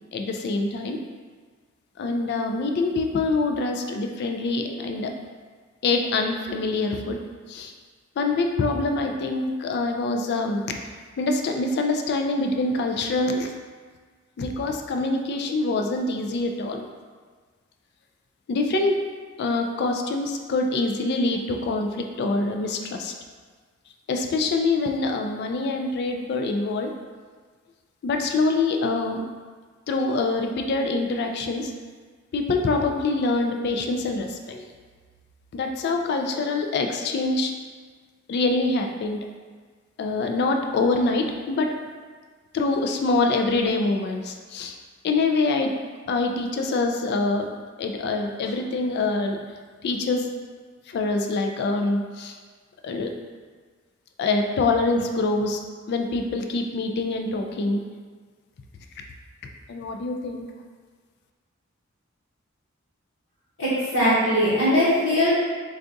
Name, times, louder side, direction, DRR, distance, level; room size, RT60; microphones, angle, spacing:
voice 1, 0.1-1.0 2.0-5.1 5.8-7.2 7.5-7.7 8.2-10.8 11.2-13.5 14.4-16.9 18.5-19.0 19.4-23.1 24.1-26.9 28.0-29.2 29.9-31.7 32.3-34.6 35.5-37.5 38.3-39.2 40.0-41.7 42.5-44.8 45.0-45.7 46.1-47.5 47.8-49.4 49.8-50.3 50.9-52.4 52.8-53.1 54.2-55.6 55.9-57.8 59.7-60.5, left 3 dB, 55° left, 3 dB, 0.3 m, -25 dB
voice 2, 63.6-65.3, equal, 75° left, -11 dB, 1.0 m, -20 dB
4.5 x 2.4 x 2.6 m, 1.5 s
head